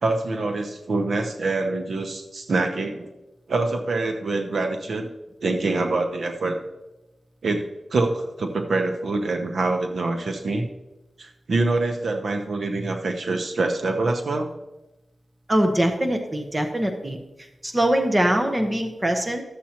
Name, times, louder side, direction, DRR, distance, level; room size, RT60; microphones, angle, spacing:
voice 1, 0.0-3.1 3.5-5.1 5.4-6.6 7.4-10.7 11.2-14.5, right 3 dB, 70° right, 4 dB, 0.8 m, -25 dB
voice 2, 15.5-17.2 17.6-19.4, right 1 dB, 20° right, 4 dB, 0.9 m, -22 dB
13.0 x 7.4 x 2.9 m, 1.0 s
wide cardioid pair, 115°, 0 cm